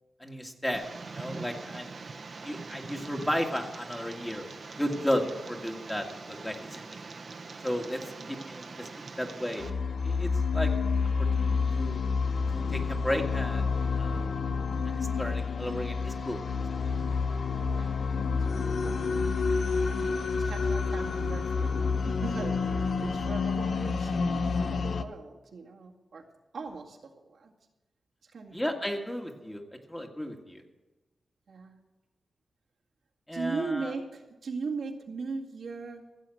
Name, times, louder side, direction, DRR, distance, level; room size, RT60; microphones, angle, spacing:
voice 1, 0.2-1.9 2.4-4.5 4.8-6.9 7.6-8.0 8.3-8.8 9.2-9.6 10.0-10.7 11.4-12.0 12.5-14.2 14.9-16.4 16.8-16.9 28.5-29.6 29.9-30.6 33.3-33.9, equal, 10° left, 2 dB, 1.9 m, -33 dB
Tick, 0.7-9.7, right 4 dB, 55° right, 1.2 m, -43 dB
sound 1, 9.6-25.0, left 4 dB, 70° left, 0.8 m, -29 dB
voice 2, 17.7-19.0 19.9-26.2 26.5-27.5 28.2-28.8 31.5-31.7 33.3-36.0, right 4 dB, 80° right, -1 dB, 2.1 m, -39 dB
15.5 x 7.9 x 7.7 m, 1.1 s
cardioid pair, 70°, 0 cm